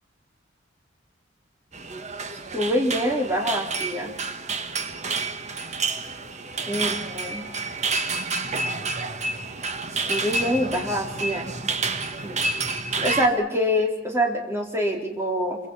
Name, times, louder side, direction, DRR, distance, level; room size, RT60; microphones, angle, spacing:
sound 1, 1.7-13.3, right 3 dB, 40° right, 1.4 m, -29 dB
voice 1, 2.5-4.1 6.7-7.5 10.1-11.7 12.2-12.3 13.0-15.6, equal, 15° right, 0 dB, 4.1 m, -25 dB
27.5 x 24.5 x 5.8 m, 0.83 s
head